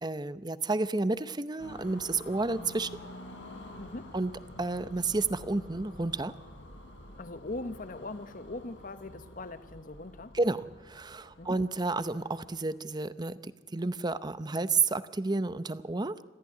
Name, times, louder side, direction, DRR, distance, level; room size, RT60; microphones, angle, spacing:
voice 1, 0.0-2.9 4.1-4.3 4.6-6.3 10.3-16.2, right 3 dB, 25° right, 14 dB, 0.8 m, -31 dB
sound 1, 1.6-12.6, left 1 dB, 80° left, 6.5 m, -49 dB
voice 2, 3.8-4.1 7.2-10.3 11.4-11.6, left 2 dB, 45° left, 12 dB, 1.0 m, -40 dB
27.0 x 14.5 x 9.5 m, 1.2 s
head